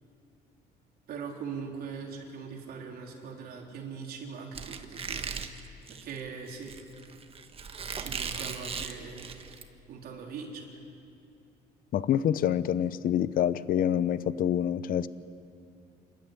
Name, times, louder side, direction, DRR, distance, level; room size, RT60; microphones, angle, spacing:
voice 1, 1.1-5.3 5.9-6.7 8.0-9.3 9.9-10.8, right 5 dB, 65° right, 0 dB, 3.7 m, -41 dB
Squeak, 4.5-9.6, right 5 dB, 35° right, 1.4 m, -38 dB
voice 2, 11.9-15.1, left 10 dB, 60° left, 16 dB, 0.8 m, -26 dB
28.5 x 12.5 x 9.1 m, 2.6 s
cardioid pair, 110°, 17 cm